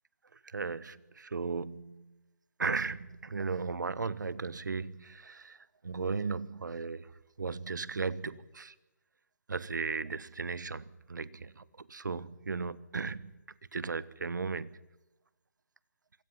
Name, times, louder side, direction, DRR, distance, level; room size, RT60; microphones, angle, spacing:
voice 1, 0.4-2.1 2.6-5.6 5.8-7.1 7.4-8.7 9.5-13.3 13.7-14.7, right 4 dB, 85° right, 1.3 m, -36 dB
27.5 x 22.0 x 5.8 m
hypercardioid pair, 160°, 10 cm